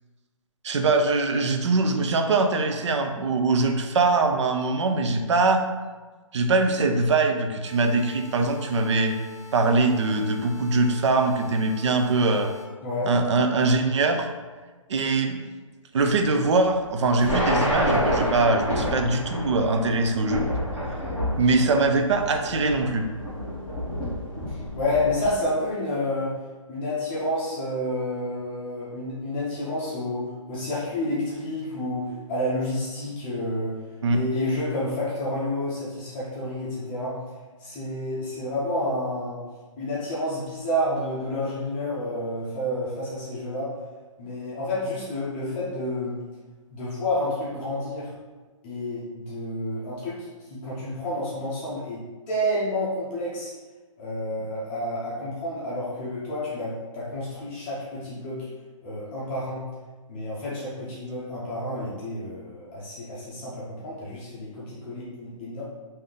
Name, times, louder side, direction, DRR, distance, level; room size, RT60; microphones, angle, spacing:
voice 1, 0.6-5.6 6.3-9.1 9.5-12.5 13.0-14.3 14.9-15.4 15.9-20.5 21.4-23.1 34.0-34.2, right 3 dB, 60° right, 5 dB, 0.5 m, -22 dB
sound 1, 7.6-12.6, left 2 dB, 30° right, 1.4 m, -46 dB
voice 2, 12.8-13.1 24.5-26.3 26.7-33.8 34.1-37.2 37.6-39.4 39.8-43.7 44.2-46.2 46.7-48.1 48.6-53.5 54.0-58.5 58.8-59.6 60.1-65.6, left 1 dB, 20° left, -8 dB, 0.7 m, -29 dB
sound 2, 17.2-25.3, equal, 5° right, 1.0 m, -28 dB
3.4 x 2.7 x 3.8 m, 1.3 s
hypercardioid pair, 160°, 17 cm